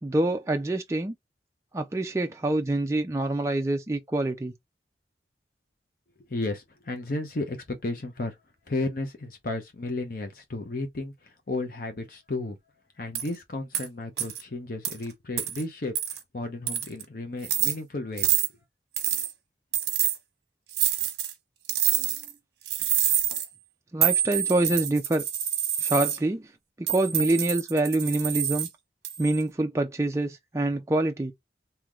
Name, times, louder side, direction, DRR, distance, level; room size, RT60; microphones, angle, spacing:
voice 1, 0.0-1.2 1.7-4.5 22.0-22.1 23.9-25.2 25.8-26.5 26.8-28.7 29.2-31.3, right 2 dB, 15° right, 0.3 m, -26 dB
voice 2, 6.3-8.4 8.7-12.6 13.0-18.4, left 2 dB, 50° left, 0.7 m, -33 dB
sound 1, 13.1-13.3 13.7-13.9 14.2-14.4 14.8-14.9 15.4-15.6 16.0-16.2 16.7-17.0 17.4-17.7 18.2-18.5 19.0-19.3 19.7-20.2 20.7-21.3 21.7-22.3 22.7-23.5 24.0-26.2 26.9-28.7 29.0-29.4, right 11 dB, 65° right, 1.0 m, -27 dB
3.7 x 2.8 x 3.0 m
head